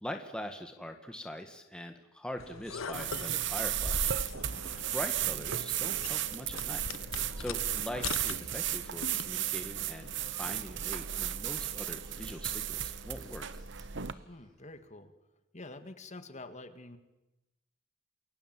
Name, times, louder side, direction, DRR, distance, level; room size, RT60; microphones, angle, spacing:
voice 1, 0.0-4.0 4.9-6.9 7.4-10.1 10.4-13.5, equal, 5° left, 5 dB, 1.5 m, -42 dB
sound 1, 2.4-9.5, left 4 dB, 80° left, 1.0 m, -42 dB
sound 2, 2.9-14.1, right 11 dB, 60° right, 1.0 m, -34 dB
voice 2, 4.5-4.9 14.3-15.1 15.5-17.0, left 2 dB, 35° left, 9 dB, 2.0 m, -47 dB
Singing, 6.2-14.9, equal, 20° right, 6.7 m, -62 dB
28.5 x 22.5 x 7.6 m, 0.98 s
head